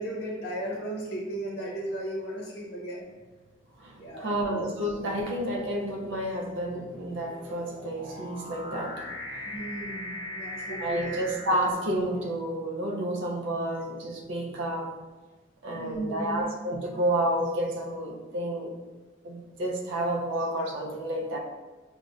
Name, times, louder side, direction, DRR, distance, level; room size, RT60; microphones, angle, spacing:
voice 1, 0.0-3.1 4.0-4.6 9.4-11.2 15.8-16.5, right 1 dB, 50° left, -4 dB, 0.6 m, -35 dB
sound 1, 3.1-3.5 4.3-12.6, left 1 dB, 10° right, 1.1 m, -41 dB
voice 2, 3.8-9.4 10.8-14.9 15.6-18.8 19.2-21.4, right 1 dB, 65° right, 1 dB, 0.5 m, -30 dB
5.0 x 2.1 x 2.4 m, 1.2 s
head